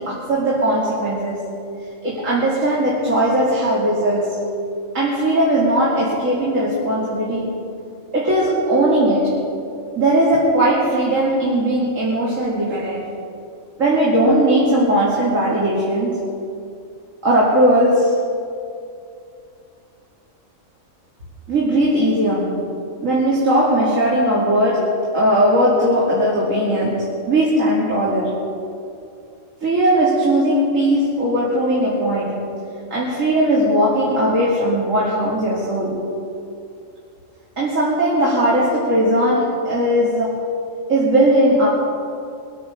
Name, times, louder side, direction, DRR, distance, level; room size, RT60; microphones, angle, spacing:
voice 1, 0.0-1.5 2.0-4.4 4.9-7.5 8.1-9.5 10.0-13.1 13.8-16.3 17.2-18.2 21.5-22.7 23.0-28.5 29.6-32.5 32.9-36.0 37.6-40.4 40.9-41.7, right 1 dB, 75° right, -6 dB, 2.9 m, -18 dB
23.5 x 9.4 x 5.5 m, 2.6 s
omnidirectional pair, 1.4 m